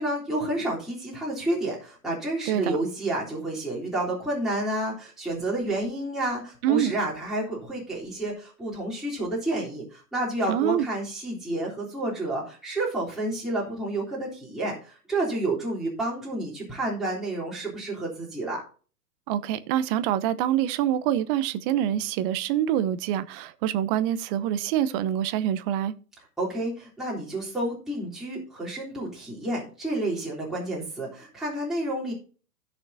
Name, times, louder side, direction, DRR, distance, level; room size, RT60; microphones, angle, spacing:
voice 1, 0.0-18.6 26.4-32.1, right 1 dB, ahead, 3.5 m, -30 dB
voice 2, 2.5-2.8 6.6-6.9 10.5-10.9 19.3-25.9, right 11 dB, 35° right, 0.9 m, -25 dB
16.0 x 6.7 x 2.7 m
hypercardioid pair, 120°, 47 cm